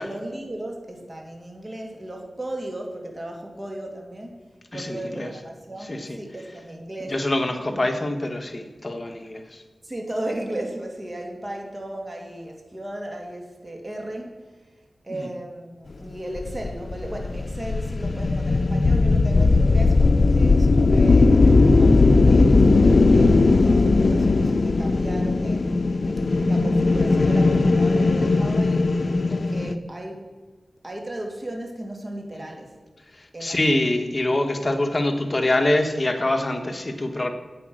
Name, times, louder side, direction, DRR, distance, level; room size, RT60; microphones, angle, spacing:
voice 1, 0.0-4.4 4.7-7.2 7.7-7.8 9.8-14.6 15.0-25.9 26.4-30.3 30.8-32.8 33.3-33.6, right 1 dB, 35° right, 2 dB, 2.6 m, -35 dB
voice 2, 4.7-5.3 5.9-6.2 7.1-9.6 33.2-37.3, left 1 dB, 35° left, 5 dB, 1.3 m, -25 dB
sound 1, 16.4-29.7, left 3 dB, 60° left, 0.6 m, -18 dB
11.0 x 8.6 x 6.2 m, 1.4 s
wide cardioid pair, 70°, 0 cm